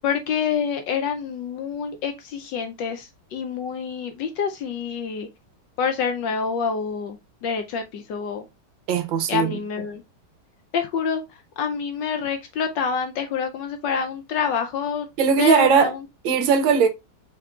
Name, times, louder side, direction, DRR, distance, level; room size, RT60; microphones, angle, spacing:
voice 1, 0.0-5.3 5.8-8.5 9.3-10.0 10.7-15.1 15.4-16.1, left 6 dB, 70° left, 1.1 m, -27 dB
voice 2, 8.9-9.6 15.2-15.9 16.2-16.9, right 6 dB, 70° right, 1.5 m, -19 dB
5.9 x 3.6 x 2.3 m
omnidirectional pair, 2.3 m